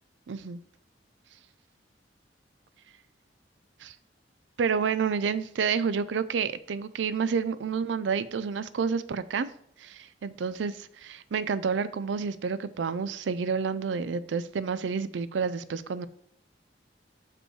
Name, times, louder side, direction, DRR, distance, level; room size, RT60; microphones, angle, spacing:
voice 1, 0.3-0.6 3.8-3.9 4.6-9.5 9.8-10.7 11.0-16.1, right 6 dB, 75° right, 0.4 m, -29 dB
6.2 x 5.2 x 4.6 m
head